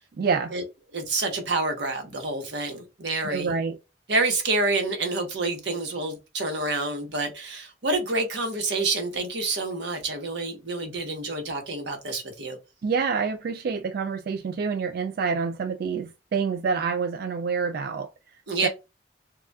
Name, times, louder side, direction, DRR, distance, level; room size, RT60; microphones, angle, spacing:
voice 1, 0.2-0.6 3.2-3.8 12.8-18.7, right 5 dB, 60° right, 0.3 m, -27 dB
voice 2, 0.9-3.5 4.1-12.6 18.5-18.7, right 2 dB, 85° right, 1.1 m, -28 dB
6.6 x 2.4 x 2.3 m
head